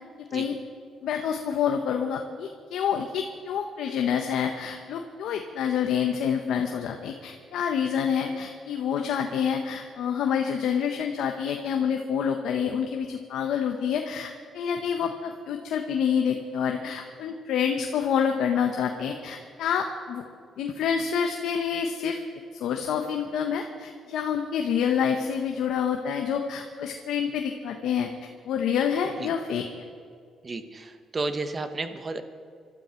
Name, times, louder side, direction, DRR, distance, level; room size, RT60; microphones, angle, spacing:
voice 1, 1.0-20.2 20.6-22.2 22.6-28.1 28.4-29.7, left 7 dB, 80° left, 4 dB, 1.1 m, -27 dB
voice 2, 30.4-32.2, right 3 dB, 35° right, 9 dB, 1.4 m, -32 dB
24.0 x 12.5 x 4.5 m, 2.1 s
cardioid pair, 90°, 0 cm